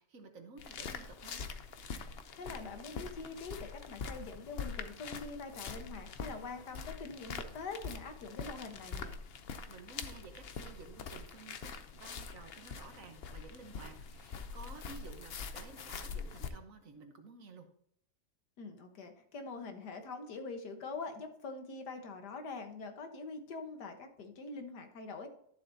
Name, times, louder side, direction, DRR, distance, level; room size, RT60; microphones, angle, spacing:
voice 1, 0.0-1.4 9.7-17.7, right 4 dB, 55° right, 6 dB, 1.4 m, -53 dB
sound 1, 0.6-16.5, left 5 dB, 55° left, 0.7 m, -44 dB
voice 2, 2.3-9.1 18.6-25.3, left 4 dB, 85° left, 6 dB, 1.8 m, -44 dB
12.0 x 7.3 x 2.7 m, 0.69 s
omnidirectional pair, 1.7 m